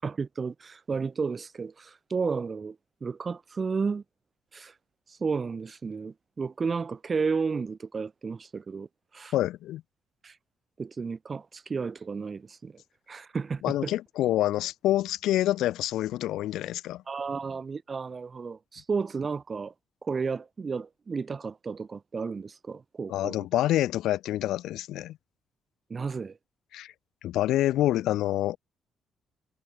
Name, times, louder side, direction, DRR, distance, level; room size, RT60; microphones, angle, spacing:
voice 1, 0.0-2.8 3.0-4.0 4.5-4.7 5.1-8.9 9.1-9.4 10.2-10.4 10.8-12.8 13.1-14.0 17.1-19.7 20.0-23.5 25.9-26.4, right 5 dB, 35° right, 6.2 m, -32 dB
voice 2, 9.3-9.8 13.6-17.0 23.1-25.2 26.7-26.9 27.2-28.6, left 14 dB, 85° left, 1.4 m, -27 dB
cardioid pair, 90°, 0 cm